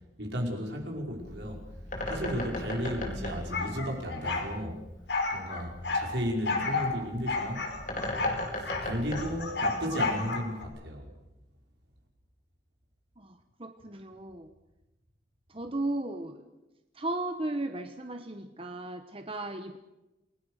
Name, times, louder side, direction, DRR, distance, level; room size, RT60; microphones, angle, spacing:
voice 1, 0.2-1.6 2.0-4.8 5.3-7.8 8.6-11.1, equal, 70° right, 5.4 m, -34 dB
Bird, 1.1-10.2, left 1 dB, 45° left, 4.9 m, -38 dB
sound 1, 3.5-4.5 5.1-6.1 6.5-6.9 7.3-8.9 9.1-10.6, left 3 dB, 70° left, 5.0 m, -31 dB
voice 2, 13.2-14.5 15.5-16.4 16.9-19.8, right 2 dB, 30° right, 1.2 m, -35 dB
28.5 x 20.0 x 6.6 m
head